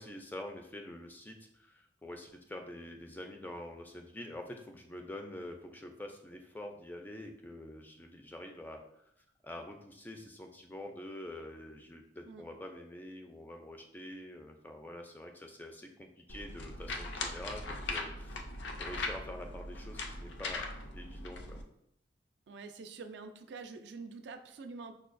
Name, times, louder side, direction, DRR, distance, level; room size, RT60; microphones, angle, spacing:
voice 1, 0.0-8.8 9.4-18.4 18.8-20.7 20.9-21.6, left 1 dB, 10° left, 3 dB, 0.3 m, -46 dB
sound 1, 16.3-21.6, left 2 dB, 70° left, 0.4 m, -40 dB
voice 2, 22.5-24.9, right 4 dB, 70° right, 7 dB, 0.3 m, -46 dB
5.5 x 2.2 x 2.5 m, 0.77 s
head